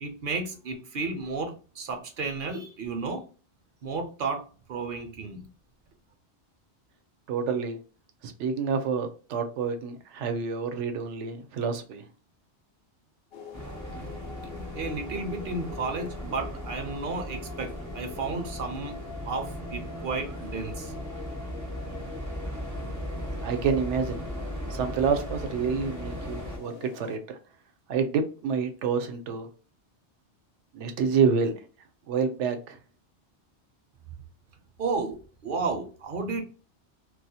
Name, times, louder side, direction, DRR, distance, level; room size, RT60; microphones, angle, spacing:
voice 1, 0.0-3.2 3.8-5.5 14.7-19.0 19.3-20.9 34.8-36.4, right 4 dB, 60° right, 0.6 m, -33 dB
voice 2, 7.3-7.8 8.2-12.1 23.4-24.2 24.7-27.4 27.9-29.5 30.7-31.5 32.1-32.8, right 6 dB, 85° right, 0.9 m, -28 dB
sound 1, 13.3-27.2, left 6 dB, 65° left, 0.7 m, -44 dB
sound 2, 13.5-26.6, equal, 25° right, 0.4 m, -37 dB
2.3 x 2.0 x 2.6 m
omnidirectional pair, 1.2 m